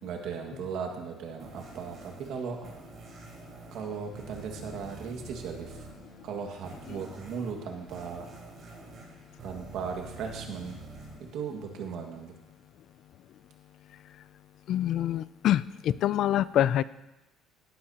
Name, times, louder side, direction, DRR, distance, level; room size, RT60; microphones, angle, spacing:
voice 1, 0.0-2.7 3.7-5.9 6.2-8.3 9.4-10.8 11.2-12.3, right 6 dB, 60° right, 3 dB, 1.8 m, -37 dB
sound 1, 1.4-12.2, right 3 dB, 40° right, 4.5 m, -48 dB
voice 2, 14.7-16.8, left 11 dB, 50° left, 17 dB, 0.3 m, -26 dB
17.0 x 11.5 x 2.9 m, 1.0 s
cardioid pair, 165°, 0 cm